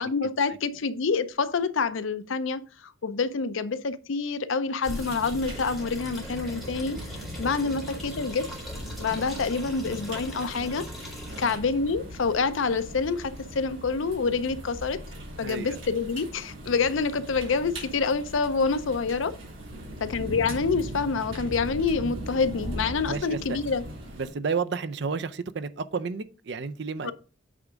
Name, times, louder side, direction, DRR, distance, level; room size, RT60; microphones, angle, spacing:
voice 1, 0.0-7.0 7.4-8.4 9.0-11.1 11.4-15.0 15.4-19.3 20.0-23.8 27.0-27.1, left 4 dB, 75° left, 0.6 m, -27 dB
sound 1, 4.8-11.6, equal, ahead, 2.3 m, -43 dB
sound 2, 4.8-24.3, equal, 80° right, 3.2 m, -39 dB
voice 2, 15.4-15.8 19.7-20.0 23.0-23.6 24.2-27.1, right 5 dB, 55° right, 0.5 m, -32 dB
8.5 x 3.5 x 5.0 m
head